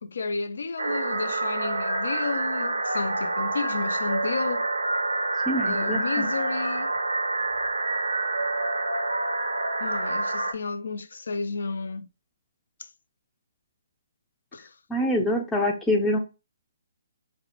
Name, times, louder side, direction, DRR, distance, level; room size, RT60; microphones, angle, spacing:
voice 1, 0.0-4.7 5.7-6.9 9.8-12.1 12.8-12.9 14.5-14.7, left 4 dB, 65° left, 0.3 m, -32 dB
sound 1, 0.8-10.5, right 2 dB, 80° right, 0.5 m, -27 dB
voice 2, 5.5-6.3 14.9-16.2, left 1 dB, 10° left, 0.5 m, -25 dB
4.1 x 2.1 x 2.9 m
figure-of-eight pair, 135°, 0 cm